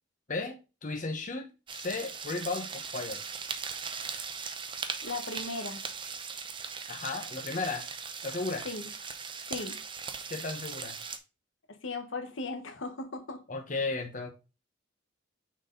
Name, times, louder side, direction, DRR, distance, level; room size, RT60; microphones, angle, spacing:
voice 1, 0.3-3.2 6.9-7.9 8.2-8.7 10.3-11.0 13.5-14.3, left 3 dB, 40° left, 0.9 m, -35 dB
sound 1, 1.7-11.2, right 5 dB, 25° right, 0.6 m, -39 dB
voice 2, 5.0-5.8 8.6-8.9 9.5-9.8 11.7-13.4, left 3 dB, 80° left, 1.2 m, -37 dB
6.2 x 4.2 x 3.8 m
head